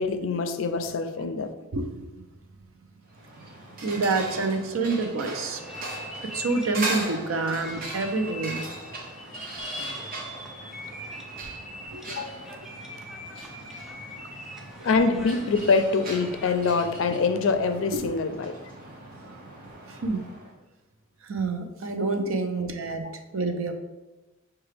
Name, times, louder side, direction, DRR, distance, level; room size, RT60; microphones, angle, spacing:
voice 1, 0.0-1.5 12.1-12.5 14.8-18.5 23.0-23.1, left 4 dB, 70° left, 8 dB, 0.4 m, -25 dB
voice 2, 1.7-2.2 3.8-5.6 6.3-8.6 11.9-12.0 17.9-18.1 19.9-20.2 21.2-23.8, right 3 dB, 85° right, 6 dB, 0.5 m, -28 dB
sound 1, 3.1-20.5, right 2 dB, 45° right, 0.8 m, -39 dB
sound 2, 5.6-16.8, left 1 dB, 5° right, 0.5 m, -42 dB
5.6 x 2.3 x 3.3 m, 1.1 s
head